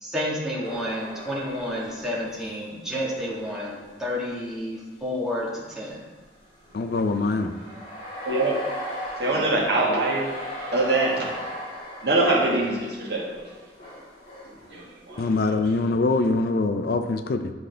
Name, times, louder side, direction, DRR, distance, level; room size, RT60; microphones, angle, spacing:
voice 1, 0.0-6.0, left 1 dB, 5° right, -7 dB, 1.6 m, -30 dB
sound 1, 0.6-4.7 5.2-5.3 6.2-15.5, equal, 30° left, 2.2 m, -39 dB
voice 2, 6.7-7.5 15.2-17.5, left 3 dB, 55° left, 8 dB, 0.4 m, -23 dB
voice 3, 8.2-8.6 9.2-10.3 10.7-11.3 12.0-13.4 14.7-15.2, right 2 dB, 65° right, -3 dB, 1.5 m, -23 dB
9.8 x 5.0 x 3.4 m, 1.4 s
head